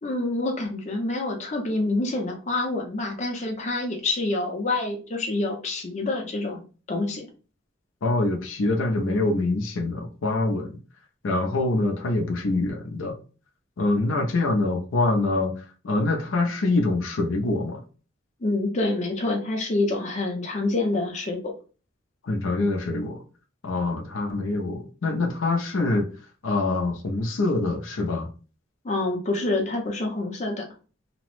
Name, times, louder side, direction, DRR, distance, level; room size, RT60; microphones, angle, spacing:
voice 1, 0.0-7.3 18.4-21.4 28.8-30.7, left 2 dB, 35° left, 0.6 m, -27 dB
voice 2, 8.0-10.8 11.2-13.2 13.8-17.8 22.2-23.2 23.6-26.1 26.4-28.3, left 2 dB, 80° left, 0.5 m, -25 dB
2.9 x 2.0 x 3.0 m
head